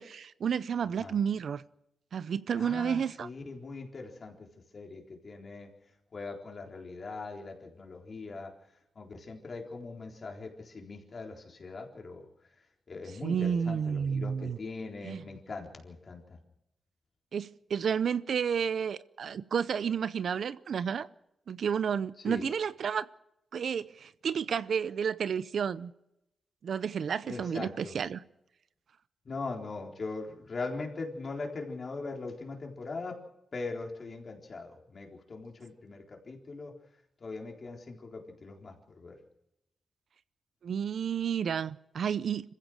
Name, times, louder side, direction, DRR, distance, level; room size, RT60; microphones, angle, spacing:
voice 1, 0.0-1.6 2.1-3.3 13.2-14.6 15.0-15.2 17.3-21.1 21.5-23.1 23.5-25.9 26.6-28.2 40.6-42.5, right 7 dB, 65° right, 16 dB, 0.7 m, -31 dB
voice 2, 2.5-4.5 4.7-5.7 6.1-8.5 9.0-12.3 12.9-16.4 22.3-22.5 27.2-27.9 29.2-33.2 33.5-36.7 37.2-39.2, left 3 dB, 40° left, 1 dB, 4.0 m, -41 dB
26.5 x 15.5 x 6.4 m, 0.85 s
wide cardioid pair, 115°, 0 cm